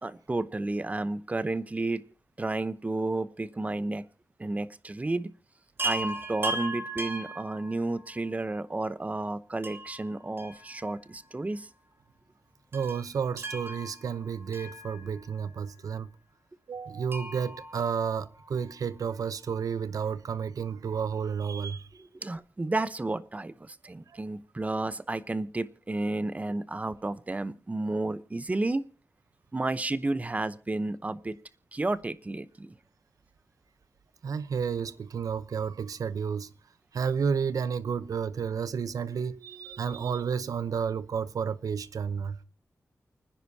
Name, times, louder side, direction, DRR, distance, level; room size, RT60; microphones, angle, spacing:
voice 1, 0.0-2.0 2.4-4.0 4.4-5.3 5.8-11.7 22.0-28.9 29.5-31.4 31.7-32.7, right 2 dB, 25° right, 0.8 m, -32 dB
Chime, 5.8-8.2 9.6-11.2 11.4-11.5 12.7-15.4 17.1-18.7 20.3-20.4 20.6-20.7, right 2 dB, 40° right, 2.4 m, -37 dB
voice 2, 12.7-16.1 16.7-22.0 24.1-24.2 34.2-36.5 36.9-42.4, right 6 dB, 85° right, 0.8 m, -31 dB
29.5 x 10.0 x 2.8 m
wide cardioid pair, 105°, 6 cm